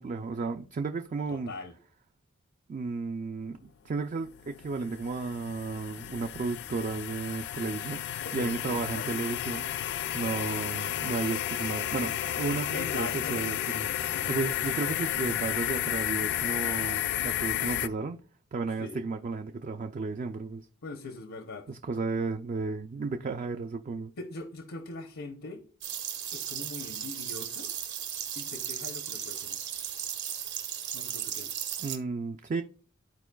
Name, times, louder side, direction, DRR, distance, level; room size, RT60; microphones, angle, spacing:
voice 1, 0.0-1.5 2.7-8.1 8.3-9.7 10.1-18.2 18.5-20.7 21.7-24.1 31.8-32.6, right 4 dB, 40° right, 0.3 m, -33 dB
voice 2, 1.3-1.7 8.2-9.2 12.7-13.4 18.8-19.0 20.8-21.7 24.2-25.6 26.3-27.7 28.4-29.6 30.9-31.5, left 3 dB, 80° left, 0.8 m, -41 dB
sound 1, 4.0-17.9, left 11 dB, 55° left, 0.3 m, -32 dB
sound 2, 25.8-32.0, right 9 dB, 60° right, 1.0 m, -36 dB
12.5 x 4.5 x 2.3 m
head